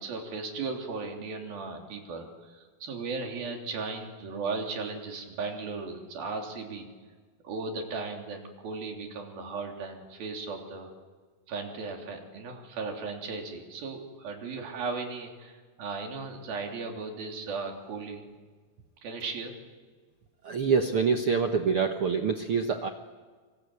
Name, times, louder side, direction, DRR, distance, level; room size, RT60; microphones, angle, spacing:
voice 1, 0.0-6.9 7.4-10.9 11.5-18.3 19.0-19.5, right 4 dB, 80° right, 2 dB, 5.0 m, -36 dB
voice 2, 20.4-22.9, right 5 dB, 65° right, 5 dB, 1.4 m, -26 dB
26.5 x 25.5 x 8.4 m, 1.5 s
omnidirectional pair, 4.2 m